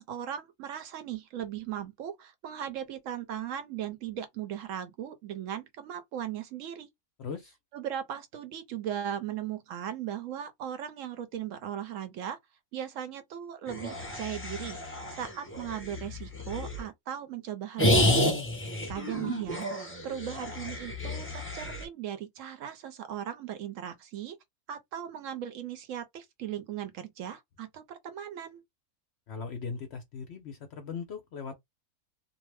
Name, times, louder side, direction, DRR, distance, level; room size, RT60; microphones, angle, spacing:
voice 1, 0.0-6.9 7.7-12.4 12.7-18.3 18.9-24.4 24.7-28.6, right 10 dB, 70° right, 0.9 m, -38 dB
voice 2, 7.2-7.5 29.3-31.5, left 5 dB, 65° left, 0.7 m, -39 dB
sound 1, 13.7-16.8 17.8-21.8, left 1 dB, 15° left, 0.4 m, -30 dB
2.6 x 2.0 x 3.2 m
omnidirectional pair, 1.6 m